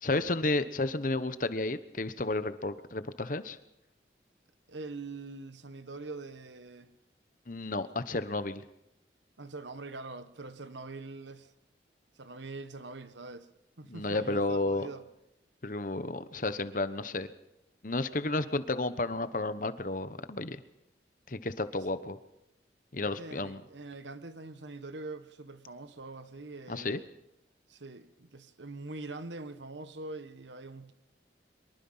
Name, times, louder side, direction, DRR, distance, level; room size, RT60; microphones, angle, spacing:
voice 1, 0.0-3.6 7.5-8.6 13.9-14.9 15.6-17.3 17.8-20.6 21.3-22.2 22.9-23.6 26.7-27.0, left 2 dB, 45° left, 1.1 m, -32 dB
voice 2, 4.7-6.9 9.4-11.5 12.2-13.5 13.8-15.1 23.2-27.1 27.7-30.9, right 3 dB, 85° right, 1.4 m, -43 dB
24.0 x 23.0 x 5.7 m
head